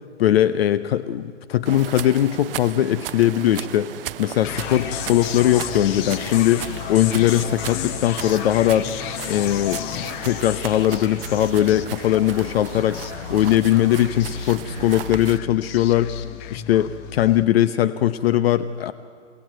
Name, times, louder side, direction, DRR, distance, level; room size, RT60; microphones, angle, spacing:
voice 1, 0.2-8.9 9.3-13.0 13.3-16.1 16.5-18.9, left 12 dB, 55° left, 12 dB, 0.9 m, -20 dB
sound 1, 1.6-15.4, right 12 dB, 50° right, 0.7 m, -36 dB
sound 2, 4.4-17.5, left 10 dB, 30° left, 1.1 m, -33 dB
29.0 x 18.0 x 9.1 m, 2.5 s
figure-of-eight pair, 120°, 37 cm